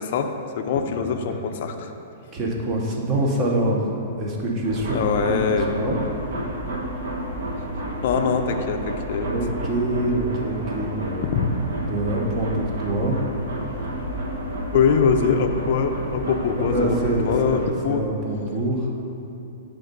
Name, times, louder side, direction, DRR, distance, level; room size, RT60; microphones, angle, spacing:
voice 1, 0.0-1.9 4.9-5.7 8.0-9.3 11.3-11.4 14.7-17.0 17.2-18.0, left 6 dB, 45° left, 5 dB, 0.4 m, -23 dB
voice 2, 0.9-1.4 2.3-5.0 5.2-6.0 9.2-11.3 11.8-13.2 16.6-18.9, right 1 dB, 20° right, -1 dB, 0.7 m, -25 dB
sound 1, 4.6-17.7, right 1 dB, 65° right, 1.0 m, -30 dB
6.9 x 3.5 x 5.1 m, 2.7 s
hypercardioid pair, 175°, 0 cm